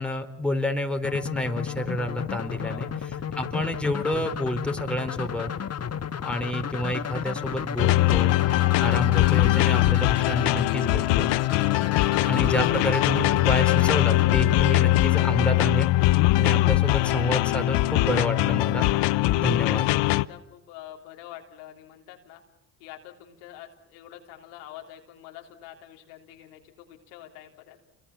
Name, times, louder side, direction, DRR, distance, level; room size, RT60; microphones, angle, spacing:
voice 1, 0.0-2.9 3.4-5.5 6.2-8.3 8.8-11.3 12.3-15.9 16.4-18.9 19.4-19.8, left 1 dB, ahead, 4 dB, 4.2 m, -29 dB
sound 1, 1.0-16.0, left 8 dB, 35° left, 1.4 m, -33 dB
sound 2, 7.8-20.2, left 18 dB, 70° left, 0.9 m, -21 dB
voice 2, 19.6-22.4 22.8-27.8, left 12 dB, 85° left, 2 dB, 3.6 m, -46 dB
28.5 x 23.0 x 7.2 m, 0.81 s
supercardioid pair, 70°, 44 cm